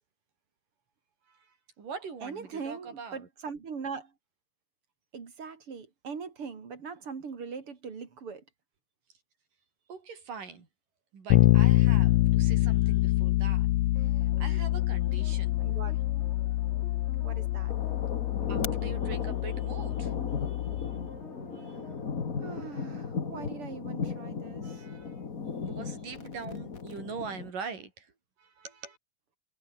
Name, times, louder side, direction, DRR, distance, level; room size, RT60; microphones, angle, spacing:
voice 1, 1.3-3.3 9.9-10.7 11.1-13.7 14.0-15.5 18.5-20.1 20.4-21.0 21.5-21.8 24.6-25.2 25.6-28.1 28.4-29.0, right 5 dB, 70° right, 6.2 m, -43 dB
voice 2, 2.2-4.1 5.1-8.4 15.6-15.9 17.2-17.7 22.4-24.9, right 5 dB, 40° right, 3.4 m, -41 dB
Bass guitar, 11.3-21.1, left 17 dB, 80° left, 1.6 m, -26 dB
sound 1, 14.0-23.3 23.7-23.8, left 2 dB, 20° left, 5.4 m, -49 dB
sound 2, 17.7-27.5, left 5 dB, 35° left, 1.7 m, -36 dB
omnidirectional pair, 3.9 m